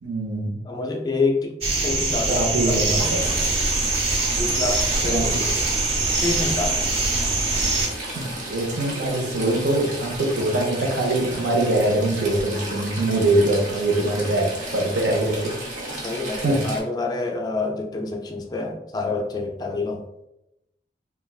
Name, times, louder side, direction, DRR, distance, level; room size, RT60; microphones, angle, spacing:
voice 1, 0.0-0.5 2.3-3.4 5.1-5.4 8.1-15.5 16.0-16.1 16.3-16.6, right 1 dB, 80° right, 0 dB, 0.7 m, -23 dB
voice 2, 0.7-3.5 4.4-5.7 6.2-7.0 8.1-8.3 15.9-20.0, left 3 dB, 25° left, 2 dB, 0.3 m, -28 dB
sound 1, 1.6-7.9, right 2 dB, 65° right, 1.2 m, -23 dB
Stream / Trickle dribble, 3.0-16.8, right 1 dB, 45° right, 0.7 m, -34 dB
3.2 x 2.3 x 2.3 m, 0.85 s
head